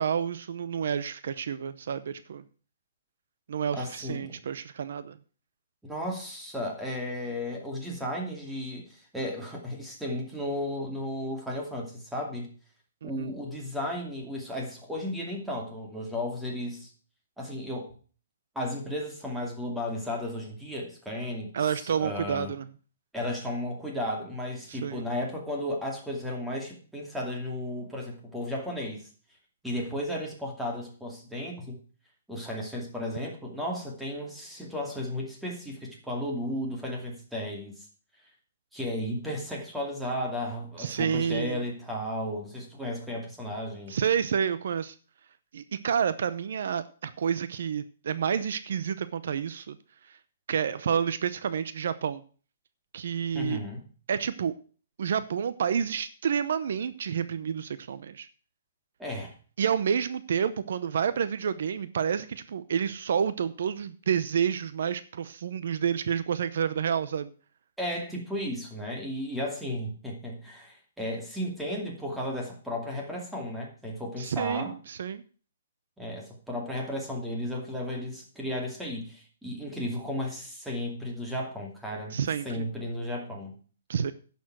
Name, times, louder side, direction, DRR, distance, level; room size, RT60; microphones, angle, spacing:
voice 1, 0.0-2.4 3.5-5.2 13.0-13.3 21.5-22.7 24.7-25.0 40.8-41.6 43.9-44.9 45.5-49.8 50.1-50.2 50.5-52.2 52.9-53.6 54.1-54.5 55.0-58.3 59.6-67.3 74.2-75.2 82.1-82.7 83.9-84.1, right 7 dB, 65° right, 14 dB, 0.7 m, -29 dB
voice 2, 3.7-4.4 5.8-12.5 13.0-16.9 17.4-17.9 18.5-22.5 23.1-29.1 29.6-31.8 32.3-37.9 38.7-44.0 53.3-53.8 59.0-59.3 67.8-74.7 76.0-82.2 82.4-83.5, left 1 dB, 5° right, -1 dB, 2.5 m, -34 dB
10.5 x 7.0 x 6.2 m, 0.40 s
hypercardioid pair, 165°, 0 cm